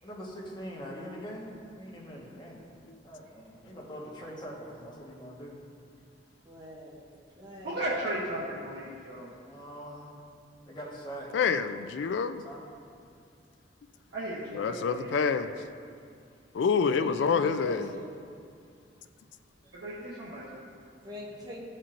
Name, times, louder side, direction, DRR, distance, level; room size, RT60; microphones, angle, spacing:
voice 1, 0.0-2.8 3.0-5.6 9.1-10.2 10.7-11.3 12.3-12.7 20.5-21.0, equal, 25° left, -4 dB, 1.2 m, -43 dB
voice 2, 6.4-7.0 7.3-7.9 16.8-18.1 19.6-19.8 21.0-21.6, left 1 dB, 25° right, -4 dB, 0.8 m, -43 dB
voice 3, 7.6-9.3 14.1-15.4 19.7-20.5, right 1 dB, 80° right, -8 dB, 1.0 m, -35 dB
voice 4, 11.3-12.4 14.5-15.5 16.5-17.9, left 5 dB, 75° left, 10 dB, 0.3 m, -27 dB
12.5 x 4.3 x 2.5 m, 2.4 s
head